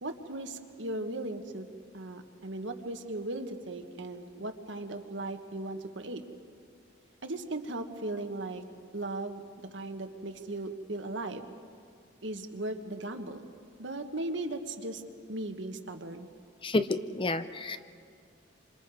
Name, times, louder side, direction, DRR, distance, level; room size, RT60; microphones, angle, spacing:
voice 1, 0.0-1.7 1.9-6.2 7.2-8.6 8.9-11.4 12.2-13.5 13.8-15.0 15.3-16.3, right 2 dB, 70° right, 6 dB, 1.5 m, -37 dB
voice 2, 16.6-17.8, left 2 dB, 25° left, 11 dB, 0.6 m, -30 dB
27.0 x 26.5 x 4.9 m, 2.2 s
head